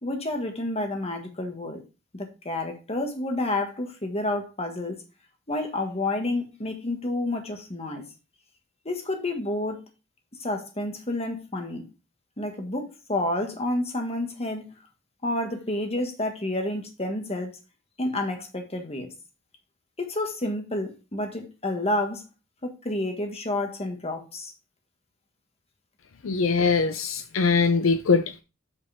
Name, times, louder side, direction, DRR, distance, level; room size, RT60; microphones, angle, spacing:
voice 1, 0.0-1.8 2.1-5.0 5.5-8.0 8.9-9.8 10.4-11.8 12.4-14.7 15.2-17.5 18.0-19.1 20.0-22.2 22.6-24.5, left 1 dB, 30° left, 1.7 m, -29 dB
voice 2, 26.2-28.4, left 4 dB, 75° left, 0.5 m, -22 dB
7.7 x 6.4 x 3.5 m
head